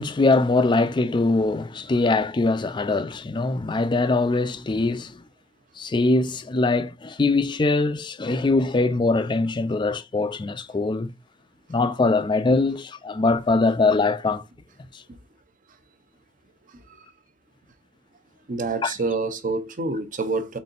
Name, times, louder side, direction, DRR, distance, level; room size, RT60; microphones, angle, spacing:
voice 1, 0.0-5.2 5.8-11.1 11.7-14.4 18.8-18.9, left 3 dB, 25° left, 0.4 m, -22 dB
voice 2, 18.5-20.6, right 3 dB, 45° right, 0.6 m, -27 dB
4.1 x 3.7 x 2.5 m
head